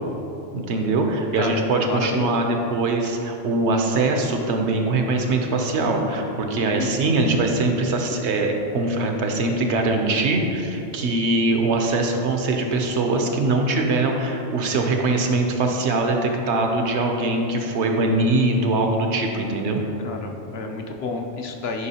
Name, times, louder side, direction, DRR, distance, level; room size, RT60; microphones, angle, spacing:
voice 1, 0.5-19.8, right 2 dB, 70° right, 3 dB, 0.9 m, -22 dB
voice 2, 1.4-2.4 6.7-7.1 20.0-21.9, left 3 dB, 65° left, 3 dB, 0.8 m, -30 dB
9.6 x 4.7 x 2.8 m, 2.9 s
omnidirectional pair, 1.2 m